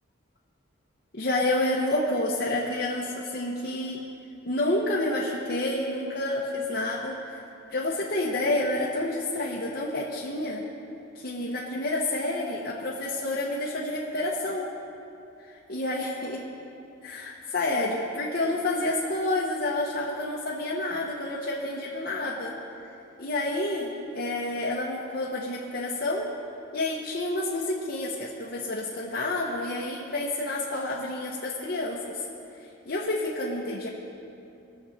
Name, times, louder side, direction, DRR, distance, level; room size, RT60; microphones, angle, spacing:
voice 1, 1.1-4.0 4.4-7.4 7.7-10.6 11.1-14.7 15.5-16.4 17.0-22.5 23.2-26.2 26.7-32.0 32.9-33.9, left 2 dB, 50° left, -5 dB, 1.1 m, -29 dB
20.5 x 7.3 x 4.2 m, 2.8 s
head